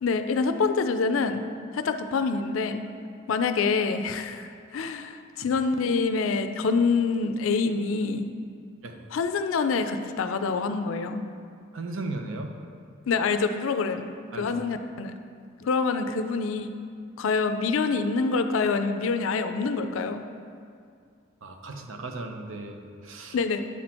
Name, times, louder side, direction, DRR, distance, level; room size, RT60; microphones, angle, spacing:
voice 1, 0.0-1.4 1.7-2.8 3.3-8.3 9.1-11.3 13.1-14.1 14.4-15.1 15.6-16.7 17.2-20.2 23.3-23.6, left 4 dB, 85° left, 8 dB, 0.4 m, -26 dB
voice 2, 11.7-12.6 14.3-14.5 21.4-23.4, right 2 dB, 80° right, 4 dB, 0.6 m, -36 dB
8.2 x 4.3 x 4.3 m, 2.3 s
head